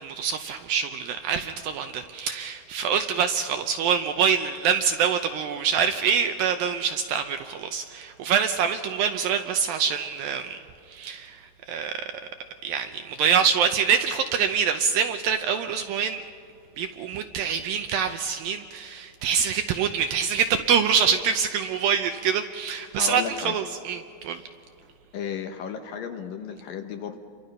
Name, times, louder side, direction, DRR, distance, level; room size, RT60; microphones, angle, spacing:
voice 1, 0.0-10.6 10.9-11.9 12.6-16.2 16.8-24.4, right 7 dB, 80° right, 7 dB, 2.2 m, -25 dB
voice 2, 23.0-23.6 25.1-27.2, left 7 dB, 70° left, 6 dB, 2.5 m, -34 dB
29.5 x 24.5 x 5.5 m, 2.5 s
omnidirectional pair, 4.8 m